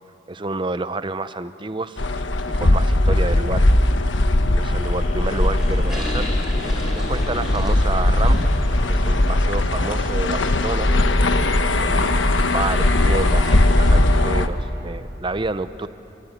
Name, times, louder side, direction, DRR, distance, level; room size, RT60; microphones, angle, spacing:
voice 1, 0.3-3.7 4.4-6.3 7.0-8.5 8.9-10.9 11.8-12.1 12.5-15.9, right 3 dB, 25° right, 12 dB, 0.7 m, -29 dB
sound 1, 2.0-14.5, left 1 dB, 85° left, 1.2 m, -19 dB
sound 2, 2.4-9.6, left 2 dB, 40° left, 2.9 m, -39 dB
sound 3, 5.3-14.0, equal, 5° right, 6.1 m, -38 dB
29.0 x 23.0 x 8.3 m, 2.9 s
head